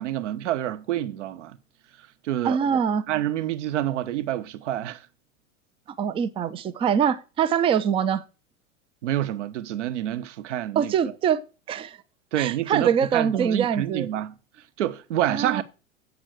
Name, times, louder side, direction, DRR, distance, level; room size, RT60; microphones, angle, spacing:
voice 1, 0.0-1.6 2.2-2.8 3.1-5.0 9.0-10.9 12.3-14.3 14.8-15.6, right 12 dB, 60° right, 1.0 m, -28 dB
voice 2, 2.4-3.1 6.0-8.2 10.7-11.4 11.7-12.0 12.4-14.1 15.3-15.6, right 8 dB, 15° right, 0.4 m, -24 dB
8.0 x 6.1 x 8.0 m
figure-of-eight pair, 90°, 40 cm